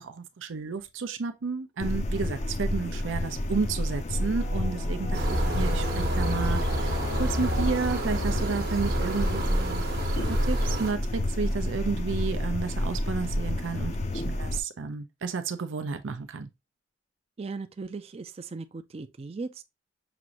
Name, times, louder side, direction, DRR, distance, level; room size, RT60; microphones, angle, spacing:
voice 1, 0.0-9.8 10.2-16.5, right 4 dB, 85° right, 0.5 m, -32 dB
sound 1, 1.8-14.6, left 1 dB, 35° left, 0.4 m, -30 dB
Singing / Musical instrument, 3.3-12.5, left 2 dB, 75° left, 0.6 m, -41 dB
sound 2, 5.1-10.9, right 1 dB, 50° right, 1.0 m, -29 dB
voice 2, 17.4-19.7, right 4 dB, 30° right, 0.4 m, -38 dB
5.9 x 2.6 x 2.9 m
head